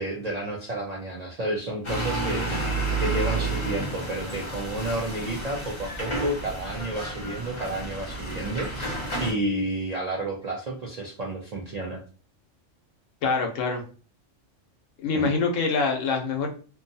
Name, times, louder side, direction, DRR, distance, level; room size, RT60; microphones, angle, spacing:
voice 1, 0.0-2.5 3.0-12.0 15.1-15.3, right 1 dB, 60° right, -2 dB, 0.4 m, -31 dB
sound 1, 1.8-9.3, right 2 dB, 30° left, 0.8 m, -30 dB
voice 2, 13.2-13.8 15.0-16.5, left 4 dB, 85° left, 3 dB, 1.0 m, -25 dB
2.7 x 2.3 x 2.6 m, 0.38 s
omnidirectional pair, 1.3 m